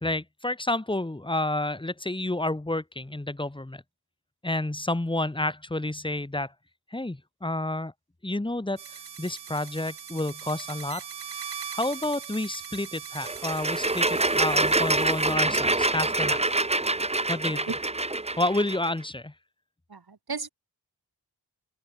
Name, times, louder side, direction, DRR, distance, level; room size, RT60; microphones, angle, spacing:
voice 1, 0.0-3.8 4.4-6.5 6.9-7.9 8.2-11.0 11.7-16.4 17.3-17.7 18.4-19.3, left 1 dB, 10° left, 1.2 m, -30 dB
sound 1, 8.8-15.3, right 7 dB, 80° right, 1.1 m, -40 dB
sound 2, 13.2-18.9, right 2 dB, 15° right, 0.9 m, -26 dB
voice 2, 19.9-20.5, right 4 dB, 65° right, 3.5 m, -34 dB
open air
wide cardioid pair, 55°, 40 cm